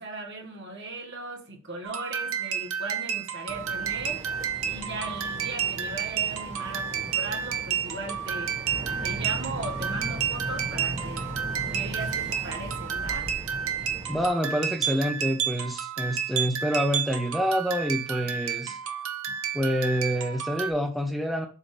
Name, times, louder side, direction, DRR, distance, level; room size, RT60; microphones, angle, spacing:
voice 1, 0.0-4.2 4.6-8.6 9.0-11.2 11.7-13.3, right 2 dB, 50° right, 1 dB, 1.5 m, -38 dB
sound 1, 1.8-20.7, right 8 dB, 65° right, 0.8 m, -31 dB
Boat Water vehicle, 3.5-14.3, right 1 dB, 35° right, 1.4 m, -38 dB
voice 2, 14.1-18.8 19.5-21.5, equal, ahead, 2 dB, 0.6 m, -27 dB
7.2 x 2.7 x 5.1 m, 0.35 s
head